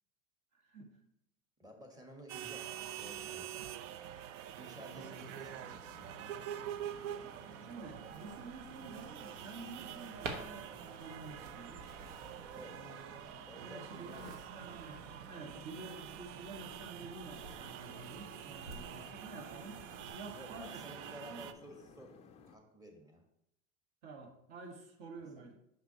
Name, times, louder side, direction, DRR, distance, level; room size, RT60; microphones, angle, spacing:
voice 1, 0.5-0.9 4.8-5.2 6.9-7.2 7.6-11.9 12.7-13.3 13.6-21.0 21.3-21.5 24.0-25.6, right 3 dB, 50° right, 3 dB, 1.5 m, -50 dB
voice 2, 1.6-2.7 3.0-3.5 4.5-5.9 12.5-12.9 13.5-14.5 15.5-15.6 20.3-23.2 25.4-25.5, equal, 10° right, 3 dB, 1.1 m, -53 dB
sound 1, 2.3-21.5, right 10 dB, 75° right, 0.6 m, -46 dB
sound 2, 4.9-22.6, left 5 dB, 20° left, 0.3 m, -59 dB
sound 3, 8.0-20.1, right 3 dB, 90° right, 1.2 m, -52 dB
6.2 x 5.9 x 2.8 m, 0.80 s
supercardioid pair, 115°, 37 cm